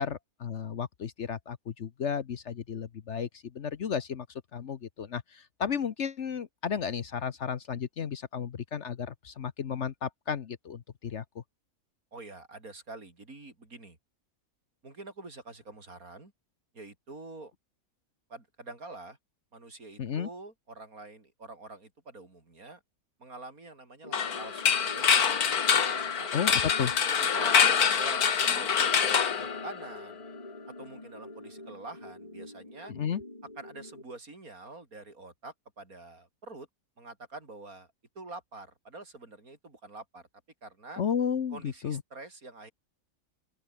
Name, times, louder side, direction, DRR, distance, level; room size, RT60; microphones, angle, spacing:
voice 1, 0.0-4.3 4.5-11.4 20.0-20.3 26.3-26.9 32.9-33.2 41.0-42.0, left 7 dB, 55° left, 1.2 m, -33 dB
voice 2, 12.1-14.0 14.8-16.3 16.7-17.5 18.3-19.2 19.5-22.8 23.2-26.3 27.3-30.2 30.7-32.9 33.6-36.7 37.0-37.9 38.2-40.2 40.6-41.0 41.5-42.7, right 2 dB, 70° right, 5.1 m, -46 dB
sound 1, 24.0-34.0, left 1 dB, 25° left, 4.2 m, -47 dB
sound 2, 24.1-30.1, left 7 dB, 80° left, 2.1 m, -25 dB
open air
omnidirectional pair, 1.6 m